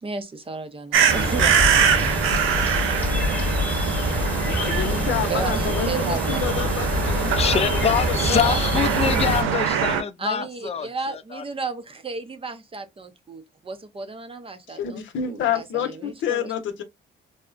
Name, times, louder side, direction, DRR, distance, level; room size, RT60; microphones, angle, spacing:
voice 1, 0.0-3.5 4.5-5.0 5.3-6.4 8.4-8.6 10.2-16.5, right 4 dB, 30° right, 0.5 m, -34 dB
sound 1, 0.9-10.0, right 7 dB, 90° right, 0.6 m, -23 dB
sound 2, 1.1-9.4, left 1 dB, 5° left, 1.0 m, -26 dB
voice 2, 4.3-7.8 8.1-8.4 14.7-16.8, left 8 dB, 75° left, 0.7 m, -28 dB
voice 3, 7.4-11.4, left 7 dB, 30° left, 0.4 m, -25 dB
3.5 x 2.0 x 2.4 m
cardioid pair, 90°, 20 cm